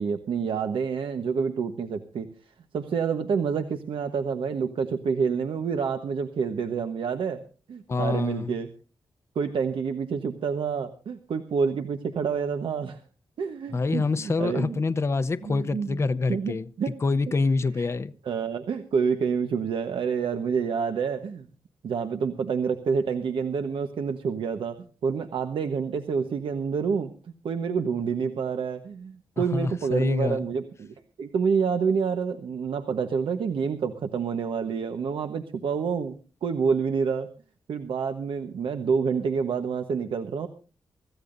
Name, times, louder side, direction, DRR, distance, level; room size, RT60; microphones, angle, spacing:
voice 1, 0.0-7.4 7.7-8.7 9.3-13.0 13.4-14.8 15.4-16.0 16.3-16.9 17.8-17.9 18.2-21.5 21.8-27.1 27.4-36.1 36.4-37.3 37.7-40.5, right 6 dB, 85° right, 1.2 m, -28 dB
voice 2, 7.9-8.5 13.7-16.7 17.0-18.1 29.4-30.4, left 3 dB, 30° left, 0.7 m, -26 dB
25.0 x 15.0 x 2.6 m
wide cardioid pair, 155°, 9 cm